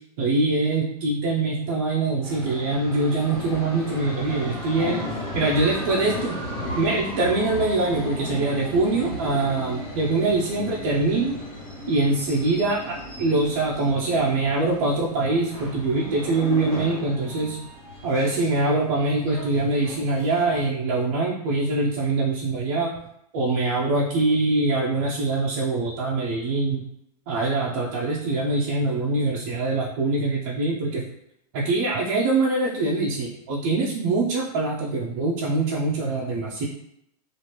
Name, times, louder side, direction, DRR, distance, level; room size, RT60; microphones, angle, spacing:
voice 1, 0.2-5.0 5.3-6.4 6.8-11.4 11.9-17.6 18.0-22.9 23.3-26.8 27.3-31.0 31.5-36.6, right 2 dB, 30° right, -4 dB, 0.4 m, -23 dB
sound 1, 2.2-20.6, left 1 dB, 5° left, 0.7 m, -35 dB
2.9 x 2.4 x 3.0 m, 0.78 s
supercardioid pair, 170°, 20 cm